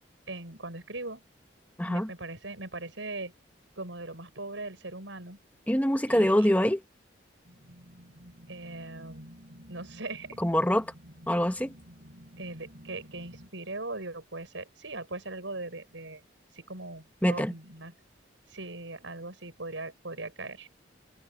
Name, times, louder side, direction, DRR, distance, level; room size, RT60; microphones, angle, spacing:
voice 1, 0.3-1.2 1.8-3.3 3.8-5.4 6.1-6.5 8.5-9.3 9.7-10.4 12.4-16.2 16.5-17.9 18.5-20.7, right 2 dB, 85° right, 6.9 m, -40 dB
voice 2, 1.8-2.1 5.7-6.8 10.4-10.9 11.3-11.7 17.2-17.5, equal, 10° left, 1.2 m, -24 dB
sound 1, 7.4-13.5, equal, 65° right, 4.2 m, -51 dB
head